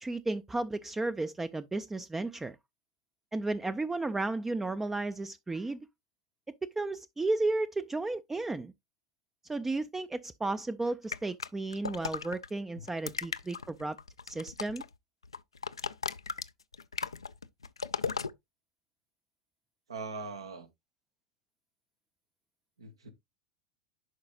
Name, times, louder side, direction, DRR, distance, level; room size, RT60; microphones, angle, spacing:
voice 1, 0.0-2.6 3.3-5.8 6.6-8.7 9.5-14.0 14.3-14.8, right 2 dB, 10° right, 0.4 m, -33 dB
sound 1, 11.1-12.5 12.9-14.9 15.2-18.3, left 5 dB, 85° left, 0.4 m, -36 dB
voice 2, 19.9-20.7 22.8-23.1, right 4 dB, 80° right, 1.2 m, -41 dB
11.0 x 4.7 x 2.4 m
figure-of-eight pair, 85°, 3 cm